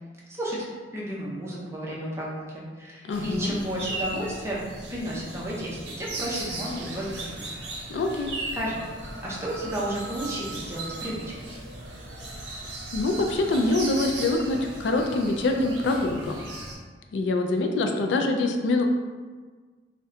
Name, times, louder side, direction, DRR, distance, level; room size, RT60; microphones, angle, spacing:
voice 1, 0.3-0.6 0.9-7.4 8.5-8.9 9.2-11.3, equal, 15° right, -5 dB, 0.6 m, -32 dB
voice 2, 3.0-3.5 7.9-8.3 12.9-16.4 17.1-18.8, left 2 dB, 85° left, 3 dB, 0.3 m, -25 dB
sound 1, 3.1-16.7, right 2 dB, 75° right, 0.7 m, -37 dB
2.7 x 2.1 x 3.6 m, 1.4 s
head